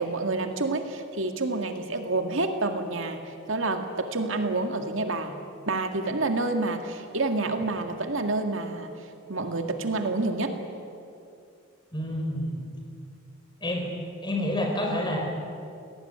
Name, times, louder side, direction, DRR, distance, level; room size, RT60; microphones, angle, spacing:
voice 1, 0.0-3.2 3.5-5.4 5.7-8.9 9.3-10.6, right 2 dB, 65° right, 5 dB, 2.1 m, -28 dB
voice 2, 11.9-12.7 13.6-13.9 14.2-15.2, left 1 dB, 20° left, 1 dB, 4.9 m, -28 dB
28.0 x 18.5 x 9.7 m, 2.5 s
head